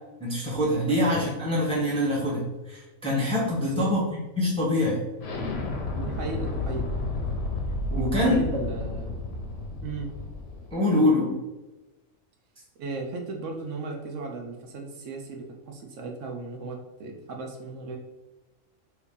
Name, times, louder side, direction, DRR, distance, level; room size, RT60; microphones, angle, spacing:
voice 1, 0.2-4.0 4.4-5.0 7.9-8.3 10.7-11.3, left 1 dB, 5° left, -5 dB, 0.6 m, -24 dB
voice 2, 1.3-1.6 3.5-3.9 5.9-6.9 7.9-9.2 9.8-10.1 10.8-11.2 12.8-18.0, right 3 dB, 75° right, 2 dB, 0.9 m, -35 dB
Explosion, 5.2-10.7, left 2 dB, 65° left, 0.7 m, -31 dB
2.8 x 2.7 x 3.6 m, 1.1 s
omnidirectional pair, 1.4 m